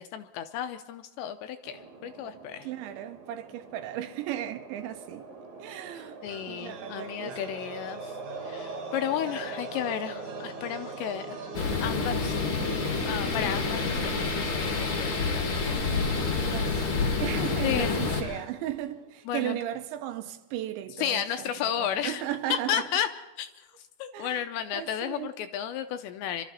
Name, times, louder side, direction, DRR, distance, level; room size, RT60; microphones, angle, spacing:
voice 1, 0.0-2.7 6.2-8.2 8.4-11.4 11.8-15.8 16.2-16.7 17.6-18.4 19.3-19.6 20.9-22.2 22.5-23.1 23.4-23.7 24.0-26.4, left 10 dB, 80° left, 2.6 m, -33 dB
sound 1, 1.6-18.0, right 3 dB, 50° right, 3.2 m, -43 dB
voice 2, 2.6-5.3 5.6-6.2 6.5-7.4 16.5-21.5 21.8-22.9 24.1-24.4 24.7-25.3, right 12 dB, 80° right, 3.0 m, -36 dB
sound 2, 6.2-19.2, right 4 dB, 65° right, 1.5 m, -44 dB
sound 3, 11.5-18.2, left 4 dB, 50° left, 1.6 m, -28 dB
25.5 x 13.0 x 4.1 m
omnidirectional pair, 5.4 m